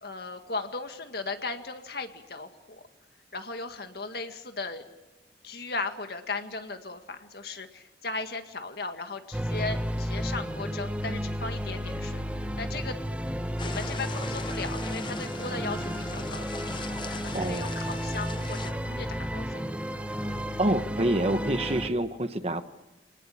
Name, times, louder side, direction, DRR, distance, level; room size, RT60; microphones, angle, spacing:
voice 1, 0.0-2.8 3.3-4.8 5.4-12.2 12.6-13.0 13.6-19.6, left 3 dB, 60° left, 7 dB, 2.0 m, -37 dB
sound 1, 9.3-21.9, equal, 5° right, 1.3 m, -32 dB
sound 2, 13.6-18.7, left 4 dB, 25° left, 0.8 m, -40 dB
voice 2, 17.3-17.8 20.6-22.6, right 1 dB, 35° right, 10 dB, 1.1 m, -27 dB
25.5 x 19.5 x 8.6 m, 1.1 s
head